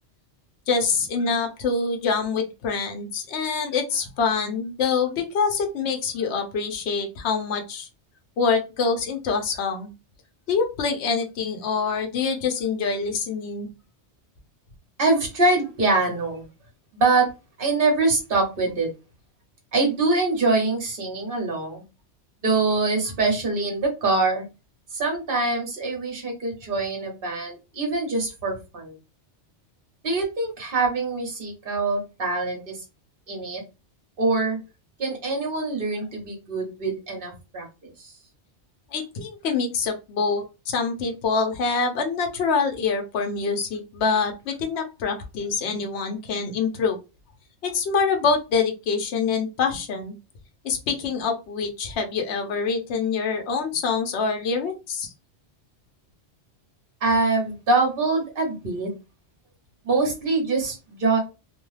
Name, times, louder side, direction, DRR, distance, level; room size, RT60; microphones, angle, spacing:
voice 1, 0.7-7.9 8.4-9.9 10.5-13.7 38.9-47.0 47.6-50.1 50.6-55.1, left 5 dB, 75° left, 4 dB, 0.9 m, -25 dB
voice 2, 15.0-16.5 16.9-17.3 17.6-18.9 19.7-21.8 22.4-24.4 24.9-28.9 30.0-32.8 33.3-33.6 34.2-34.6 35.0-38.1 57.0-58.9 59.8-61.2, right 3 dB, 55° right, 2 dB, 1.2 m, -24 dB
2.6 x 2.2 x 3.1 m, 0.28 s
omnidirectional pair, 1.2 m